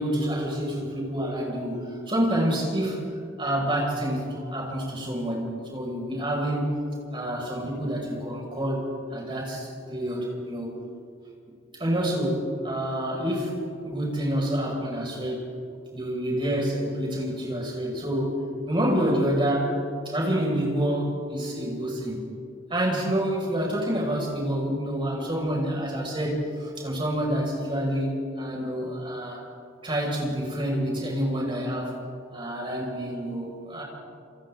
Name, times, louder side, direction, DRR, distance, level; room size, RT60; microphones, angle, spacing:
voice 1, 0.0-3.0 3.4-6.8 7.1-10.8 11.8-13.6 13.8-15.4 15.9-18.4 18.7-19.8 20.0-22.2 22.7-29.4 29.8-31.9 32.3-33.8, equal, 25° right, -2 dB, 5.9 m, -28 dB
28.5 x 28.5 x 3.9 m, 2.4 s
head